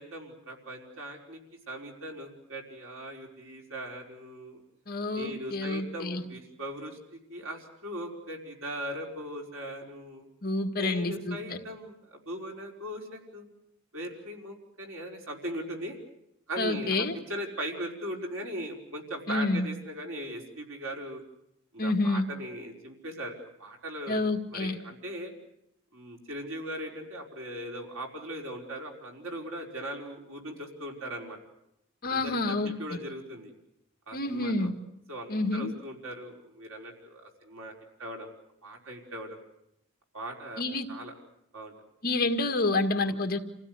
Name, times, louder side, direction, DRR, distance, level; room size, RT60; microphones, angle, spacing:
voice 1, 0.0-1.4 1.7-4.6 5.2-10.3 10.8-13.4 13.9-16.0 16.5-21.2 21.7-24.2 24.5-25.3 25.9-31.4 32.1-33.5 34.1-34.7 35.1-37.7 38.0-38.3 38.6-39.4 40.1-40.6 40.9-41.1 41.5-41.7 43.0-43.2, right 1 dB, 85° right, 1 dB, 5.2 m, -39 dB
voice 2, 4.9-6.2 10.4-11.6 16.6-17.1 19.3-19.7 21.8-22.3 24.1-24.8 32.0-32.7 34.1-34.7 35.3-35.7 40.6-40.9 42.0-43.4, left 2 dB, 50° left, 5 dB, 1.9 m, -28 dB
28.5 x 16.0 x 9.7 m, 0.80 s
head